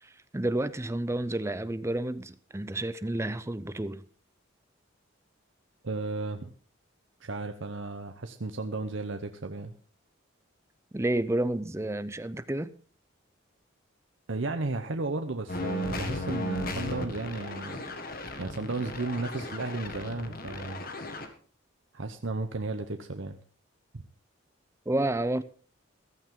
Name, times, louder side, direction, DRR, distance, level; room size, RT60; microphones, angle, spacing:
voice 1, 0.0-4.0 10.9-12.7 24.9-25.4, right 1 dB, 15° right, 0.6 m, -30 dB
voice 2, 5.8-6.5 7.2-9.7 14.3-17.8 18.4-20.9 21.9-23.4 23.9-24.0, right 3 dB, 65° right, 0.9 m, -34 dB
sound 1, 15.5-21.3, left 1 dB, 45° left, 1.8 m, -36 dB
15.0 x 13.5 x 3.8 m
head